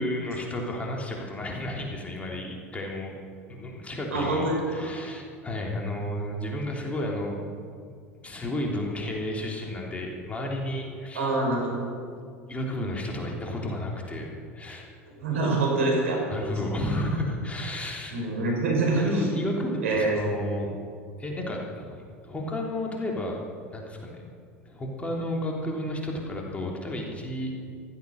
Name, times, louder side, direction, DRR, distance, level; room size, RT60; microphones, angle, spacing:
voice 1, 0.0-3.1 3.5-7.6 8.2-11.3 12.5-14.9 16.3-18.1 18.8-20.7 21.2-23.4 23.7-24.3 24.6-27.5, left 1 dB, 20° left, -1 dB, 3.4 m, -32 dB
voice 2, 4.1-4.8 11.1-11.8 15.2-16.2 18.1-19.3 19.8-20.1, right 2 dB, 75° right, -1 dB, 5.1 m, -25 dB
15.5 x 13.5 x 6.7 m, 2.2 s
hypercardioid pair, 80°, 7 cm